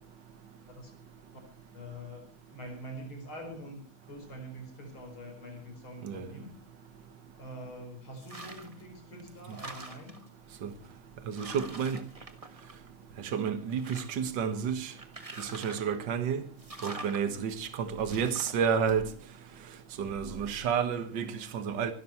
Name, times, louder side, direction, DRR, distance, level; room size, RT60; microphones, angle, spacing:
voice 1, 1.7-2.2 2.5-6.6 7.3-10.2, equal, 75° left, 5.7 m, -45 dB
sound 1, 8.2-8.8 9.2-10.3 10.9-11.0 11.3-13.0 13.4-14.3 15.0-16.0 16.6-17.2 18.0-18.7, right 2 dB, 20° right, 1.4 m, -45 dB
voice 2, 11.3-12.0 13.2-14.9 15.4-16.4 16.8-19.1 20.0-21.9, right 7 dB, 60° right, 2.0 m, -30 dB
26.5 x 13.0 x 3.1 m
omnidirectional pair, 2.3 m